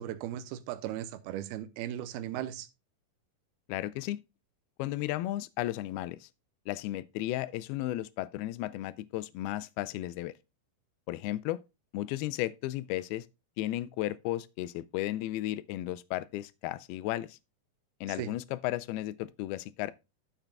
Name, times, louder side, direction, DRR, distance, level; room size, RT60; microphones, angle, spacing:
voice 1, 0.0-2.7 18.2-18.3, right 12 dB, 90° right, 2.7 m, -37 dB
voice 2, 3.7-4.2 4.8-6.3 6.7-10.3 11.1-11.6 11.9-13.3 13.6-17.4 18.0-19.9, left 15 dB, 90° left, 2.5 m, -34 dB
13.0 x 6.8 x 2.3 m
omnidirectional pair, 4.4 m